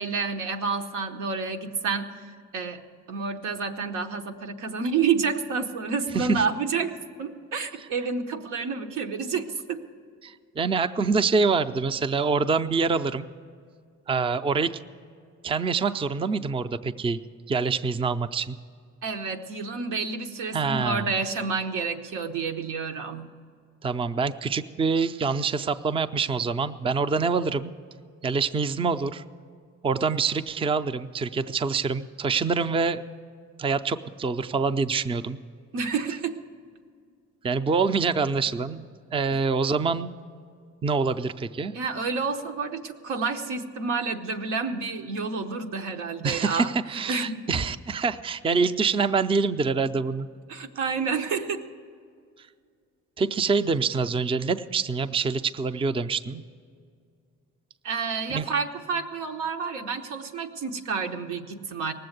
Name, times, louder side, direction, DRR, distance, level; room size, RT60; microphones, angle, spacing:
voice 1, 0.0-2.2 2.5-2.8 3.1-6.9 7.2-9.8 19.0-23.3 35.7-36.4 41.7-46.7 47.1-47.4 50.5-51.6 57.8-61.9, right 5 dB, 90° right, 4 dB, 1.0 m, -29 dB
voice 2, 10.2-13.3 14.1-14.8 15.4-17.2 17.5-18.6 20.5-21.1 23.8-27.7 28.2-29.2 29.8-33.0 33.6-35.4 37.4-38.8 39.1-40.2 40.8-41.7 46.2-50.3 53.2-56.4 58.3-58.4, right 4 dB, 20° right, 11 dB, 0.4 m, -25 dB
18.5 x 7.7 x 7.9 m, 2.2 s
cardioid pair, 90°, 30 cm